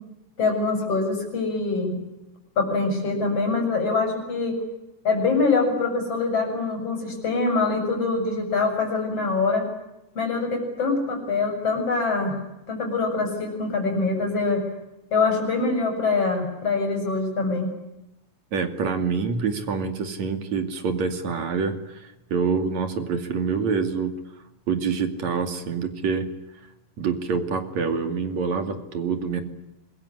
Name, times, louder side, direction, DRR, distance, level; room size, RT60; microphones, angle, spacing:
voice 1, 0.4-1.9 2.6-4.6 5.0-9.7 10.1-12.4 12.7-14.6 15.1-17.7, left 3 dB, 50° left, 4 dB, 8.3 m, -24 dB
voice 2, 18.5-24.2 24.7-26.3 27.0-29.4, right 5 dB, 70° right, 7 dB, 3.8 m, -26 dB
26.0 x 23.0 x 9.9 m, 0.92 s
omnidirectional pair, 3.3 m